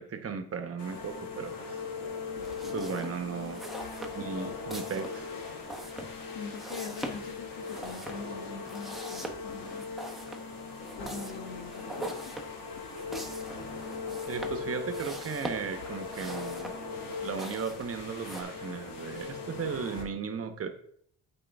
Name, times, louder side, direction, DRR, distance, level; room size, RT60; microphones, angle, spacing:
voice 1, 0.0-1.8 2.7-3.6 4.1-5.3 14.2-16.7 17.2-20.7, right 6 dB, 40° right, 7 dB, 1.1 m, -36 dB
sound 1, 0.8-20.0, left 4 dB, 70° left, 1.6 m, -39 dB
sound 2, 2.4-18.4, right 1 dB, ahead, 1.0 m, -43 dB
voice 2, 6.3-9.9 11.0-12.3, left 5 dB, 85° left, 5 dB, 1.3 m, -43 dB
8.5 x 3.7 x 3.5 m, 0.63 s
supercardioid pair, 75°, 35 cm